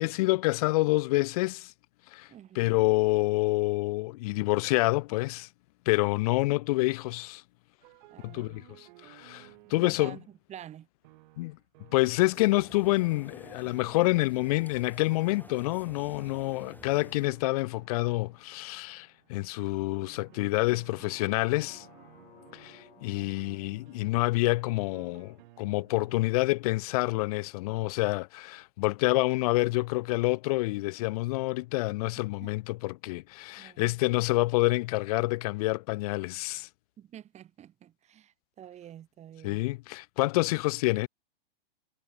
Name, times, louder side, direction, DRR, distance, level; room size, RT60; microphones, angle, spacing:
voice 1, 0.0-1.7 2.1-2.3 2.6-5.5 5.9-7.4 8.2-10.2 11.4-11.6 11.9-21.9 22.5-36.7 39.4-41.1, left 21 dB, 40° left, 0.4 m, -27 dB
voice 2, 2.3-2.8 8.1-8.6 9.6-10.9 23.1-23.5 32.4-32.5 33.6-34.0 37.0-39.7, right 11 dB, 20° right, 2.2 m, -48 dB
sound 1, 7.8-10.3 11.0-26.1, right 21 dB, 50° right, 3.7 m, -56 dB
sound 2, 12.1-17.3, left 2 dB, 5° left, 6.4 m, -52 dB
sound 3, 20.7-26.9 27.3-27.4, left 10 dB, 75° left, 6.1 m, -59 dB
hypercardioid pair, 135°, 30 cm